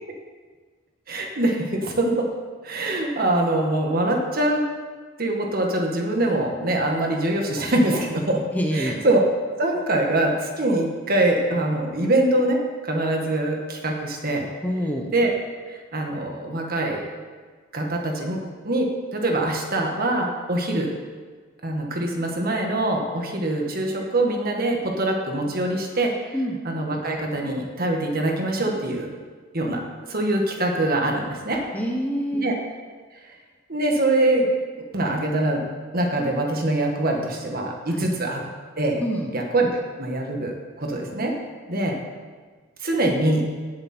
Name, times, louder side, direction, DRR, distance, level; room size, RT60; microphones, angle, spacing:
voice 1, 1.1-2.3 2.6-4.6 5.2-8.4 8.7-9.2 9.6-12.6 12.8-14.5 15.1-15.3 15.7-17.0 17.7-20.9 21.6-26.1 26.6-29.1 29.5-29.8 30.1-31.6 32.4-32.6 33.7-34.5 34.9-35.6 35.9-38.4 38.8-39.0 39.3-39.7 40.0-41.3 41.7-41.9 42.8-43.4, right 1 dB, 45° right, 1 dB, 1.7 m, -23 dB
voice 2, 8.5-9.0 14.6-15.1 26.3-26.6 31.7-32.5 37.9-38.1 39.0-39.3, equal, 10° left, 1 dB, 1.1 m, -26 dB
16.5 x 7.7 x 4.5 m, 1.5 s
head